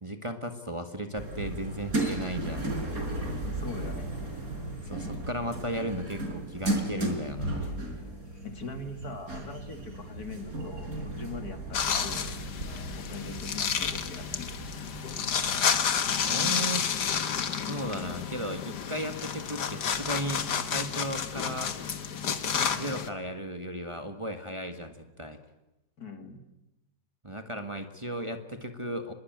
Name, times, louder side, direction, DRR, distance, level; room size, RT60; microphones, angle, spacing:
voice 1, 0.0-2.7 4.8-7.8 16.2-16.9 17.7-21.8 22.7-25.4 27.2-29.1, right 1 dB, 20° right, 6 dB, 1.7 m, -35 dB
sound 1, 1.2-16.0, right 1 dB, 60° right, 5.2 m, -35 dB
voice 2, 3.4-4.2 8.4-12.2 13.0-14.5 26.0-26.4, left 3 dB, 70° left, 7 dB, 2.9 m, -41 dB
sound 2, 11.7-23.1, left 7 dB, 85° left, 2.0 m, -30 dB
25.0 x 21.5 x 9.2 m, 0.97 s
omnidirectional pair, 1.7 m